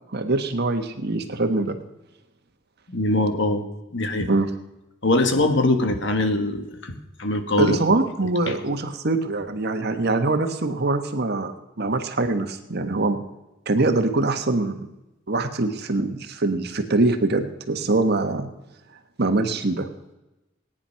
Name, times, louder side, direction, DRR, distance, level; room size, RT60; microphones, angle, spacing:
voice 1, 0.1-1.8 4.3-4.5 7.6-13.2 13.7-14.9 15.3-18.5 19.2-19.9, right 2 dB, 55° right, 7 dB, 1.4 m, -23 dB
voice 2, 2.9-3.6 3.9-4.3 5.0-7.8 8.5-8.6, left 2 dB, 65° left, 6 dB, 1.7 m, -22 dB
18.5 x 10.0 x 5.8 m, 0.97 s
head